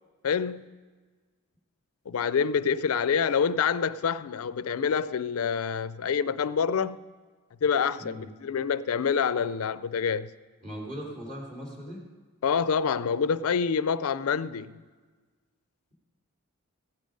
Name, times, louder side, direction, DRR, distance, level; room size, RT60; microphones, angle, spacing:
voice 1, 0.2-0.7 2.1-7.0 7.6-10.3 12.4-14.7, left 6 dB, 85° left, 0.4 m, -27 dB
voice 2, 10.6-12.0, equal, 40° right, 3.5 m, -39 dB
15.0 x 9.1 x 5.2 m
head